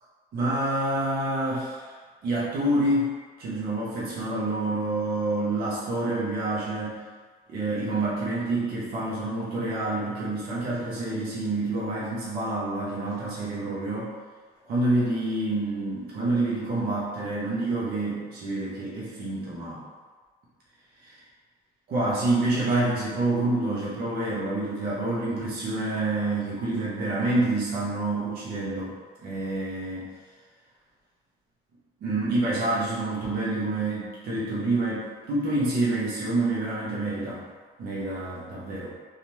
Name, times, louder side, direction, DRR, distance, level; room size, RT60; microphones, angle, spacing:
voice 1, 0.3-1.9 2.2-7.0 7.5-14.1 14.6-19.8 21.9-28.9 29.2-30.1 32.0-37.4 37.8-38.9, right 2 dB, 60° right, -7 dB, 0.8 m, -27 dB
2.7 x 2.4 x 3.0 m, 1.5 s
cardioid pair, 110°, 17 cm